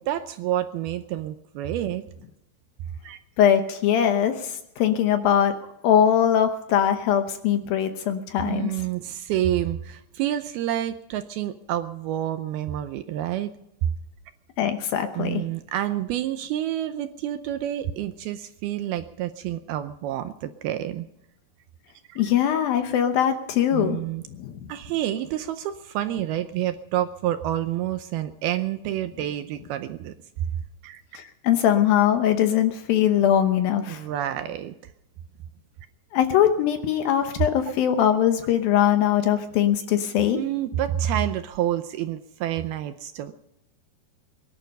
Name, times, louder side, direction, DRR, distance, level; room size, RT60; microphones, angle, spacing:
voice 1, 0.0-2.1 3.0-3.2 8.5-13.5 15.2-21.1 22.1-22.2 23.7-24.2 24.7-30.1 30.8-31.0 33.9-34.7 40.3-43.3, right 12 dB, 80° right, 10 dB, 2.3 m, -28 dB
voice 2, 3.4-5.5 5.8-8.7 14.6-15.4 22.2-24.0 24.3-24.7 31.1-34.0 36.1-40.4, left 9 dB, 70° left, 7 dB, 2.4 m, -21 dB
22.5 x 11.5 x 5.3 m, 0.85 s
omnidirectional pair, 4.9 m